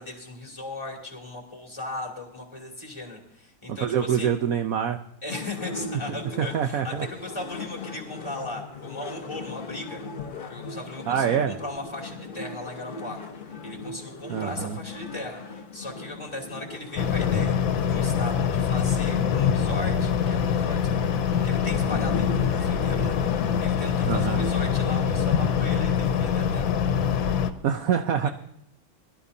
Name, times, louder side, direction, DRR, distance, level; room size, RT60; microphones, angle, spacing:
voice 1, 0.0-4.3 5.2-10.0 10.5-17.6 17.9-21.1 21.4-23.1 23.6-26.7 28.2-28.3, left 2 dB, 15° left, -1 dB, 2.8 m, -37 dB
voice 2, 3.7-5.0 6.4-7.1 11.1-11.6 14.3-14.8 24.1-24.4 27.6-28.3, right 8 dB, 65° right, 6 dB, 0.8 m, -25 dB
sound 1, 5.3-24.8, left 3 dB, 50° left, 0.6 m, -38 dB
sound 2, 17.0-27.5, left 7 dB, 75° left, 1.5 m, -24 dB
sound 3, 20.2-25.8, right 1 dB, 85° right, 7.0 m, -45 dB
22.0 x 13.0 x 2.7 m, 0.76 s
omnidirectional pair, 2.2 m